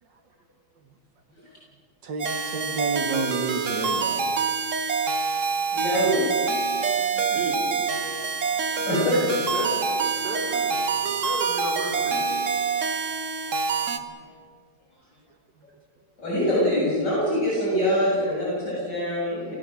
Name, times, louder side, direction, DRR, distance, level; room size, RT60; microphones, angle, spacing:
voice 1, 2.0-4.5 13.9-14.0, right 4 dB, 85° right, 5 dB, 2.3 m, -31 dB
sound 1, 2.2-14.0, right 5 dB, 45° right, 1.7 m, -26 dB
voice 2, 5.7-6.3 8.9-9.0 16.2-19.6, equal, 75° left, -6 dB, 7.9 m, -24 dB
voice 3, 6.9-8.0 8.8-12.6 15.6-15.7, right 3 dB, 65° right, 0 dB, 4.2 m, -35 dB
27.0 x 19.0 x 7.7 m, 2.1 s
omnidirectional pair, 1.9 m